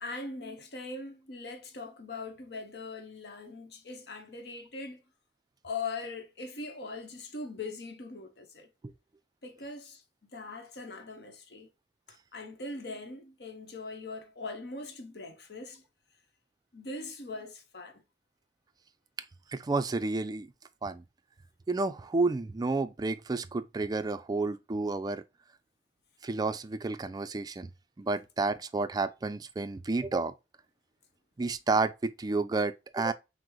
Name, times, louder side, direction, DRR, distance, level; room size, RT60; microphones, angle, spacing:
voice 1, 0.0-5.0 5.6-8.7 9.4-11.7 12.1-15.8 16.7-18.0, left 3 dB, 65° left, 0.9 m, -41 dB
voice 2, 19.5-20.5 20.8-21.0 21.7-25.2 26.2-27.7 28.0-30.3 31.4-33.1, right 3 dB, 20° right, 0.3 m, -30 dB
5.9 x 2.0 x 3.0 m
head